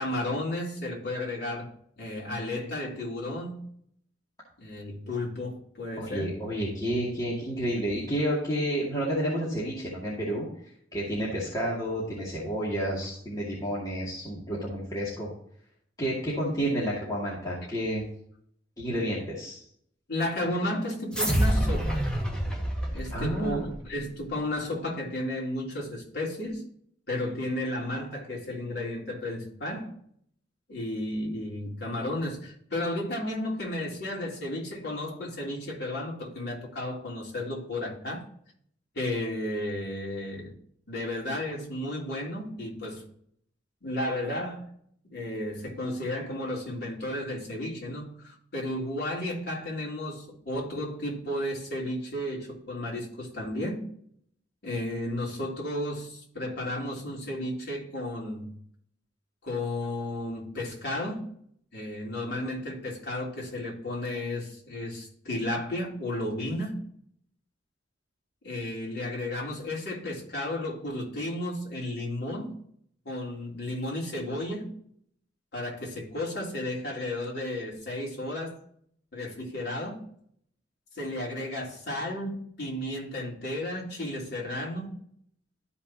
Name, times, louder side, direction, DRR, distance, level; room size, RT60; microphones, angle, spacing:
voice 1, 0.0-1.7 2.0-3.7 4.6-6.3 20.1-22.0 22.9-26.6 27.1-29.9 30.7-38.2 38.9-40.5 40.9-43.0 43.8-44.7 45.0-53.9 54.6-58.5 59.4-61.3 61.7-66.8 68.4-72.6 73.0-74.7 75.5-78.6 79.1-80.0 80.9-84.9, left 1 dB, 60° left, -3 dB, 3.2 m, -33 dB
voice 2, 6.0-10.5 10.9-15.3 16.0-18.0 18.8-19.6 23.1-23.6, equal, 20° left, -7 dB, 2.3 m, -30 dB
sound 1, 21.1-23.9, equal, 5° left, 1.7 m, -27 dB
13.0 x 5.5 x 2.8 m, 0.66 s
head